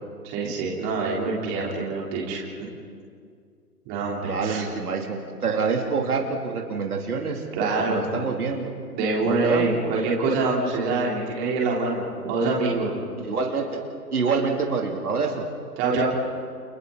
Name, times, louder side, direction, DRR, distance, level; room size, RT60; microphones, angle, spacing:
voice 1, 0.2-2.4 3.9-4.6 7.6-8.1 8.9-13.0 15.8-16.1, right 3 dB, 20° right, -3 dB, 3.7 m, -25 dB
voice 2, 4.2-7.4 7.8-8.7 9.2-9.7 13.2-13.8 14.1-15.4, right 5 dB, 65° right, 1 dB, 3.0 m, -26 dB
29.5 x 27.5 x 4.1 m, 2.2 s
figure-of-eight pair, 145°, 48 cm